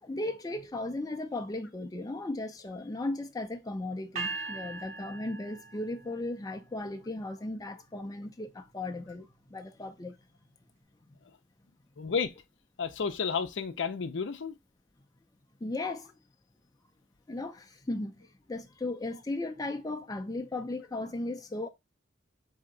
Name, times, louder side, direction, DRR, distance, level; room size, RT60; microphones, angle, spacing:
voice 1, 0.0-10.1 11.1-11.2 15.6-16.1 17.3-21.7, left 2 dB, 20° left, 0.5 m, -36 dB
sound 1, 4.2-6.3, right 3 dB, 35° right, 0.8 m, -39 dB
voice 2, 12.0-12.3 12.8-14.5, left 6 dB, 65° left, 0.6 m, -31 dB
4.3 x 2.8 x 3.8 m
head